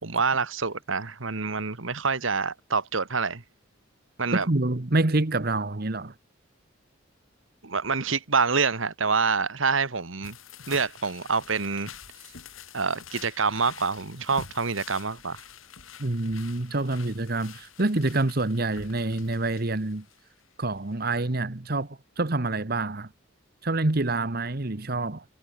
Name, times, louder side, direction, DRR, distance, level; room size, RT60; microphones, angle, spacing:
voice 1, 0.0-3.4 4.2-4.5 7.6-10.3 10.7-11.9 12.7-15.4, right 5 dB, 75° right, 1.7 m, -26 dB
voice 2, 4.3-6.1 16.0-20.0 20.6-23.1 23.6-25.2, right 2 dB, 50° right, 1.3 m, -27 dB
sound 1, 10.2-20.4 20.7-21.0 21.2-21.3, left 6 dB, 85° left, 3.5 m, -47 dB
head